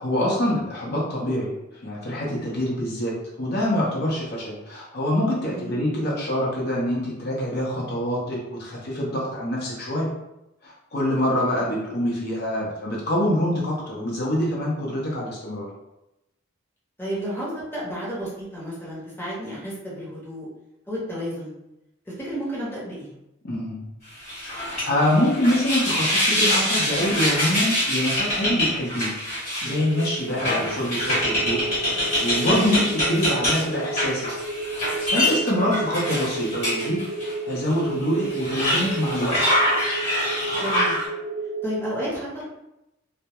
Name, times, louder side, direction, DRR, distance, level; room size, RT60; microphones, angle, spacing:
voice 1, 0.0-1.5 1.7-10.1 10.6-15.7 23.4-23.8 24.6-29.1 29.6-31.6 32.2-32.8 33.1-34.3 34.8-39.4, left 1 dB, 55° left, -4 dB, 0.6 m, -25 dB
voice 2, 5.4-5.8 17.0-20.5 20.9-21.5 22.2-23.1 32.4-32.8 40.6-41.0 41.6-42.4, right 1 dB, 10° left, -7 dB, 0.7 m, -31 dB
sound 1, 24.2-37.3 37.7-37.8 38.2-41.0, left 1 dB, 35° left, 1.1 m, -25 dB
sound 2, 29.6-41.6, right 3 dB, 55° right, 0.4 m, -33 dB
2.2 x 2.0 x 2.8 m, 0.89 s
head